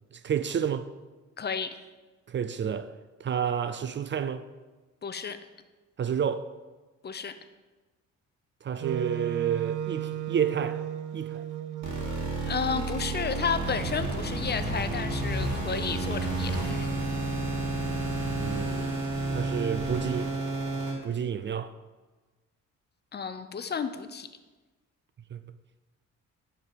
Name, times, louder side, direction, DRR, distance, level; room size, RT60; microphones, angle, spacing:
voice 1, 0.1-0.9 2.3-2.9 3.2-4.4 6.0-6.5 8.6-10.8 11.1-11.5 18.3-18.9 19.3-20.3 21.0-21.7 25.3-25.4, right 8 dB, 40° right, 0.4 m, -30 dB
voice 2, 1.4-1.7 5.0-5.4 7.0-7.3 12.5-16.9 23.1-24.3, left 6 dB, 35° left, 0.6 m, -32 dB
Wind instrument woodwind instrument, 8.8-14.8, right 11 dB, 85° right, 0.7 m, -35 dB
sound 1, 11.8-20.9, right 2 dB, 65° right, 2.6 m, -31 dB
10.5 x 4.7 x 5.1 m
cardioid pair, 90°, 30 cm